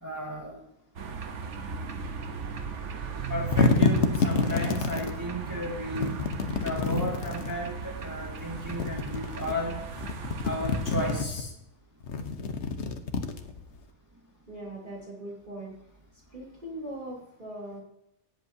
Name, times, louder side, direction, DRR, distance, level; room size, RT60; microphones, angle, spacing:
voice 1, 0.0-0.6 3.3-6.1 6.6-9.7 10.4-11.5, left 1 dB, 15° right, -3 dB, 1.9 m, -34 dB
sound 1, 1.0-11.2, right 5 dB, 85° right, 1.4 m, -37 dB
sound 2, 3.2-5.2 6.0-7.6 8.5-9.5 9.9-11.4 12.0-13.8, left 4 dB, 70° left, 1.3 m, -28 dB
voice 2, 14.5-15.7 16.3-17.8, right 1 dB, 40° right, -5 dB, 3.2 m, -40 dB
18.0 x 8.3 x 2.8 m, 0.81 s
omnidirectional pair, 1.2 m